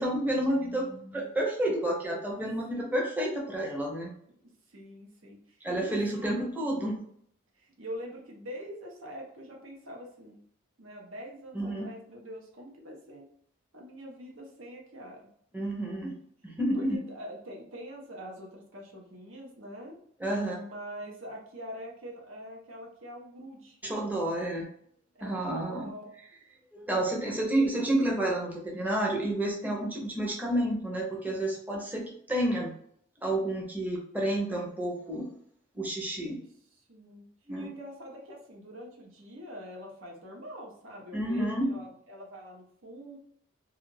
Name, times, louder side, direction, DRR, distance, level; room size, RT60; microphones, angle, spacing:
voice 1, 0.0-4.1 5.6-7.0 11.5-11.9 15.5-16.1 16.4-17.0 20.2-20.5 23.8-24.7 25.2-25.9 26.7-32.7 33.2-35.3 35.7-36.4 37.5-37.7 41.1-41.7, right 1 dB, 10° right, -2 dB, 0.5 m, -30 dB
voice 2, 4.7-6.5 7.6-10.4 10.8-13.2 13.7-15.2 16.7-20.0 20.5-23.8 25.1-26.1 27.1-27.6 36.9-37.3 37.5-43.2, equal, 90° right, 0 dB, 0.8 m, -44 dB
2.4 x 2.3 x 3.1 m, 0.65 s
head